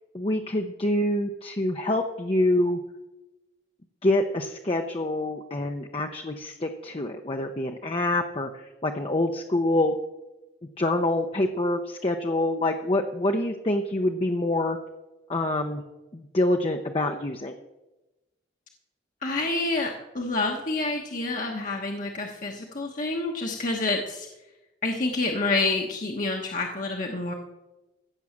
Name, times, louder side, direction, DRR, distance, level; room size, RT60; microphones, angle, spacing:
voice 1, 0.1-2.8 4.0-9.9 10.8-14.8 15.3-15.8 16.1-17.5, left 1 dB, 30° left, 3 dB, 0.7 m, -26 dB
voice 2, 19.2-24.3 24.8-27.3, left 2 dB, 45° left, 1 dB, 1.2 m, -28 dB
15.5 x 6.3 x 7.3 m, 1.0 s
head